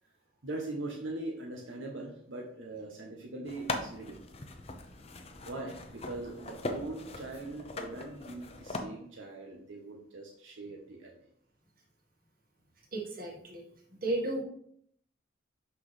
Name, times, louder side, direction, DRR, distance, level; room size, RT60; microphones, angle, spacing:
voice 1, 0.4-4.2 5.0-5.1 5.4-11.3, right 2 dB, 80° right, -1 dB, 1.0 m, -41 dB
sound 1, 3.5-8.8, left 2 dB, 30° left, 0.6 m, -40 dB
voice 2, 12.9-13.6 14.0-14.4, right 2 dB, 45° right, -1 dB, 1.8 m, -33 dB
5.9 x 5.9 x 3.3 m, 0.67 s
head